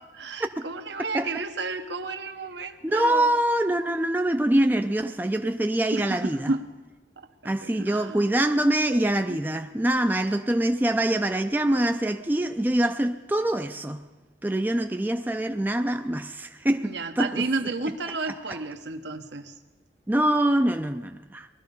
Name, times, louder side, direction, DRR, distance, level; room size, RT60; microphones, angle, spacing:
voice 1, 0.1-3.3 5.9-6.6 7.2-8.2 9.3-9.4 16.8-19.5, right 3 dB, 75° right, 1.0 m, -32 dB
voice 2, 2.8-6.5 7.4-14.1 14.4-17.4 18.3-18.6 20.1-21.5, right 1 dB, 10° right, 0.4 m, -24 dB
20.0 x 13.0 x 5.4 m
head